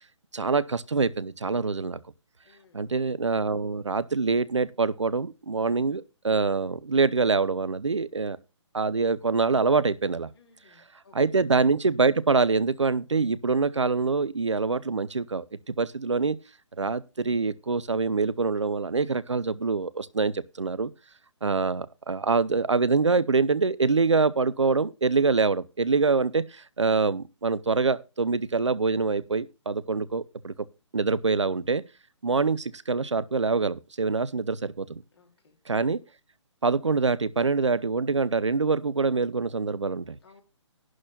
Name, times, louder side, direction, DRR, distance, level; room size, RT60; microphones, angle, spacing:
voice 1, 0.3-2.0 2.7-8.4 8.7-10.3 11.1-16.4 16.8-20.9 21.4-30.5 30.9-31.8 32.2-34.9 35.7-36.0 36.6-40.2, right 4 dB, 70° right, 0.9 m, -25 dB
voice 2, 2.4-2.8 10.3-11.1 35.1-35.6 40.2-40.4, left 5 dB, 55° left, 3.1 m, -59 dB
11.5 x 4.3 x 7.2 m
figure-of-eight pair, 135°, 16 cm